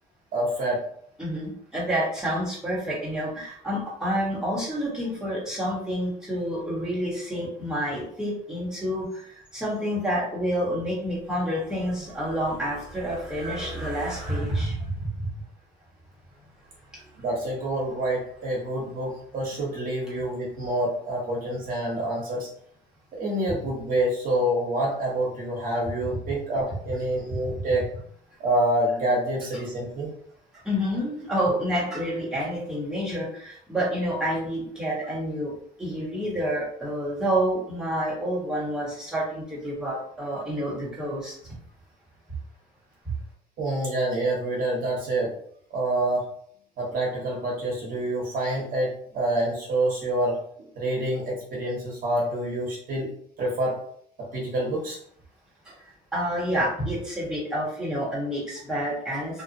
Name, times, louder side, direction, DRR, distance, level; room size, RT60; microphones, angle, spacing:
voice 1, 0.3-0.8 17.2-22.5 23.1-27.8 28.4-30.1 43.6-45.3 45.7-46.3 46.8-53.1 53.4-53.7 54.2-55.0, right 1 dB, 55° right, -4 dB, 1.0 m, -27 dB
voice 2, 1.2-9.1 9.5-15.3 27.3-27.4 27.8-27.9 30.6-35.5 35.8-41.3 55.7-55.8 56.1-59.4, equal, 5° right, -6 dB, 1.3 m, -28 dB
2.6 x 2.3 x 2.5 m, 0.63 s
cardioid pair, 110°, 17 cm